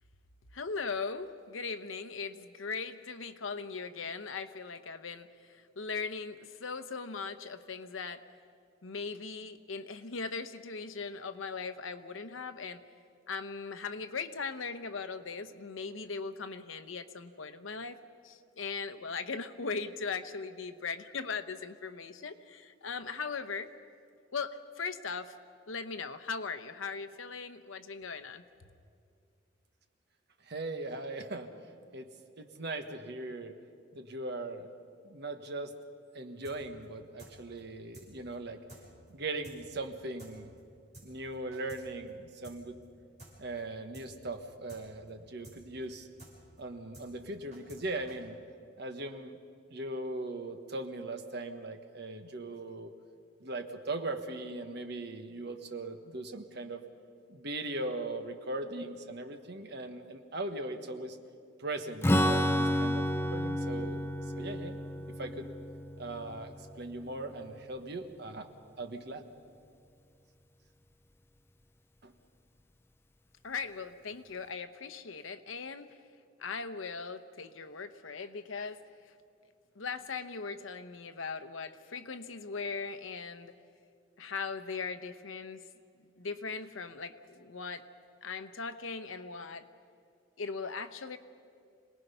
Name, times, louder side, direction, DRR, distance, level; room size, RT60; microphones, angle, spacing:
voice 1, 0.5-8.2 8.8-12.8 13.3-18.0 18.2-23.7 24.3-25.3 25.7-28.4 73.4-75.9 76.4-78.8 79.8-83.5 84.2-85.6 86.2-87.8 88.2-89.7 90.4-91.2, left 5 dB, 85° left, 11 dB, 0.9 m, -39 dB
voice 2, 30.4-31.5 31.9-32.1 32.4-33.5 33.9-34.7 35.0-35.7 36.1-38.6 39.1-40.5 41.0-42.8 43.4-46.1 46.6-48.4 48.8-49.4 49.7-52.9 53.4-56.8 57.3-61.2 61.6-64.1 64.4-64.8 65.1-65.5 66.0-68.5 68.8-69.2 72.0-72.1, right 2 dB, 55° right, 7 dB, 1.3 m, -39 dB
sound 1, 36.4-36.6 36.8-36.9 37.2-37.3 37.6-37.7 37.9-38.1 38.3-38.4 38.7-38.8 39.1-39.2 39.4-39.6 39.8-39.9 40.2-40.3 40.6-40.7 40.9-41.1 41.3-41.8 42.1-42.2 42.4-42.6 42.8-42.9 43.2-43.3 43.6-43.7 43.9-44.1 44.3-44.4 44.7-44.8 45.1-45.2 45.4-45.6 45.8-45.9 46.2-46.3 46.6-46.7 46.9-47.1 47.3-47.8 48.1-48.2, right 2 dB, 35° right, 6.7 m, -51 dB
Strum, 62.0-67.6, equal, 10° left, 0.5 m, -31 dB
26.5 x 19.0 x 5.6 m, 2.3 s
head